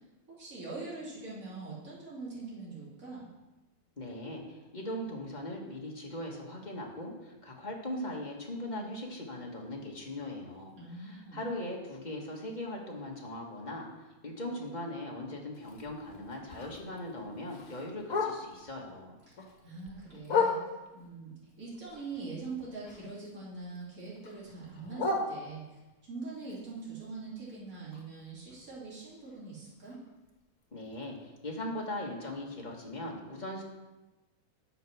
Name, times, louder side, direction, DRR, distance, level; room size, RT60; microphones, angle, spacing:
voice 1, 0.3-3.3 10.8-11.4 19.3-19.4 19.6-20.6 20.9-25.6 26.1-30.0, right 3 dB, 65° right, -7 dB, 3.3 m, -43 dB
voice 2, 4.0-19.2 30.7-33.6, left 1 dB, 30° left, -1 dB, 1.7 m, -40 dB
Bark, 15.5-18.7 19.1-21.0 21.5-23.3 23.6-25.9 26.4-30.3 30.6-30.7 31.0-31.4 31.8-31.9 32.3-32.4 32.9-33.0, left 4 dB, 70° left, 1.6 m, -37 dB
7.8 x 6.7 x 6.1 m, 1.1 s
omnidirectional pair, 1.6 m